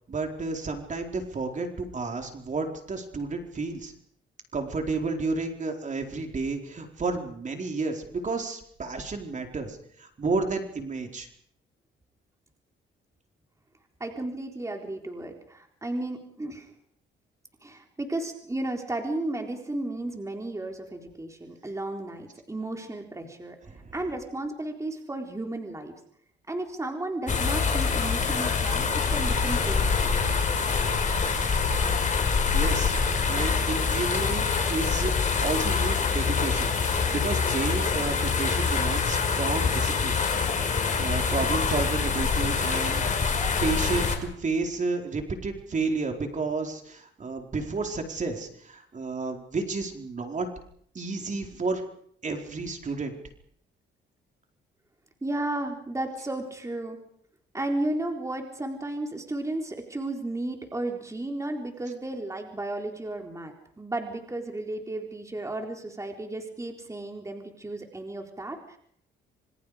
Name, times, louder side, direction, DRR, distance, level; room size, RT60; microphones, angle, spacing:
voice 1, 0.1-3.9 4.5-11.3 23.7-23.9 32.5-33.0 33.3-35.1 35.4-40.5 41.0-50.5 50.9-51.8 52.2-53.1, right 3 dB, 40° right, 3 dB, 4.5 m, -31 dB
voice 2, 14.0-16.7 17.6-23.6 23.9-25.9 26.5-30.1 55.2-57.0 57.5-68.8, right 2 dB, 15° right, 2 dB, 4.0 m, -33 dB
sound 1, 27.3-44.2, left 5 dB, 40° left, 5.1 m, -25 dB
27.0 x 25.5 x 5.1 m, 0.65 s
cardioid pair, 90°, 20 cm